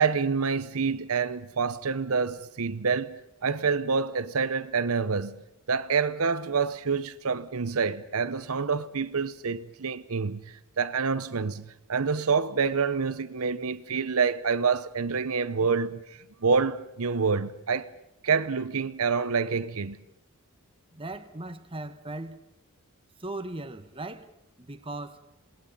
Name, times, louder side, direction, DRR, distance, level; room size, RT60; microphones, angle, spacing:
voice 1, 0.0-5.4 5.7-17.9 18.2-20.0, right 5 dB, 70° right, 0.8 m, -27 dB
voice 2, 20.9-22.4 23.2-24.3 24.6-25.2, right 2 dB, 25° right, 1.2 m, -38 dB
27.5 x 19.5 x 5.4 m
head